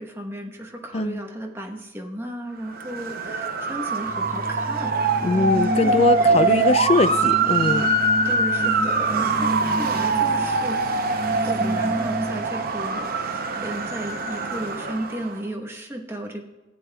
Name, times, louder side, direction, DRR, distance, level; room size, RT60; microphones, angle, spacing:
voice 1, 0.0-4.9 5.8-6.8 8.2-10.8 11.4-16.4, right 1 dB, 15° right, 1 dB, 1.0 m, -34 dB
Motor vehicle (road) / Siren, 2.7-15.4, right 3 dB, 50° right, 0.7 m, -23 dB
sound 1, 4.0-12.6, right 1 dB, 30° right, 1.2 m, -31 dB
voice 2, 5.2-7.9, left 3 dB, 30° left, 13 dB, 0.4 m, -22 dB
17.0 x 8.6 x 2.3 m, 1.1 s
head